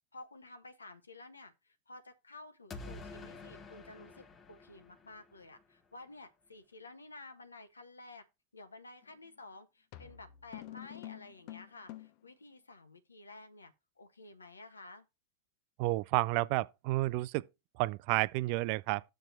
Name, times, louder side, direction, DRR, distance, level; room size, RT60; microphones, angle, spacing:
voice 1, 0.1-8.2 8.5-15.1, left 2 dB, 75° left, 1.4 m, -52 dB
sound 1, 2.7-5.6, left 3 dB, 25° left, 1.1 m, -49 dB
sound 2, 9.0-9.3 9.9-12.3, left 14 dB, 45° left, 0.8 m, -48 dB
voice 2, 15.8-17.4 17.8-19.0, right 19 dB, 45° right, 0.4 m, -31 dB
7.2 x 4.3 x 6.6 m
figure-of-eight pair, 90°, 0 cm